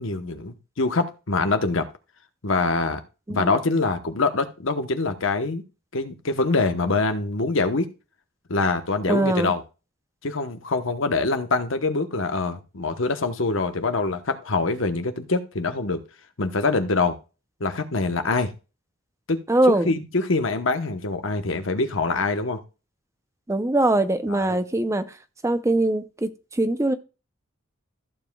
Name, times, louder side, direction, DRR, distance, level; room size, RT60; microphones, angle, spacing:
voice 1, 0.0-1.9 2.4-3.0 3.3-5.6 5.9-7.9 8.5-9.6 10.2-16.0 16.4-17.2 17.6-18.5 19.3-19.4 19.8-22.6 24.3-24.6, left 3 dB, 70° left, 1.0 m, -24 dB
voice 2, 9.1-9.5 19.5-19.9 23.5-25.0 25.4-26.9, right 1 dB, 15° right, 0.6 m, -22 dB
14.5 x 7.2 x 2.3 m
head